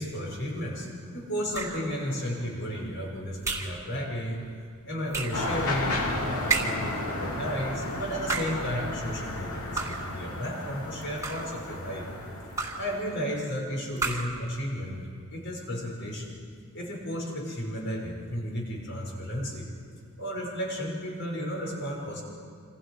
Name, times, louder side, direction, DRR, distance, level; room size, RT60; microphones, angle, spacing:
voice 1, 0.0-12.1 12.8-16.3 16.7-19.7 20.2-22.2, equal, 55° left, -1 dB, 6.2 m, -33 dB
sound 1, 1.5-1.9 3.4-3.8 5.1-5.5 6.5-7.0 8.1-8.7 9.8-10.2 11.0-11.6 12.6-13.0 14.0-14.4, right 4 dB, 15° right, 2.2 m, -31 dB
sound 2, 5.3-13.2, left 2 dB, 80° left, 2.7 m, -33 dB
28.5 x 26.5 x 5.0 m, 2.2 s
head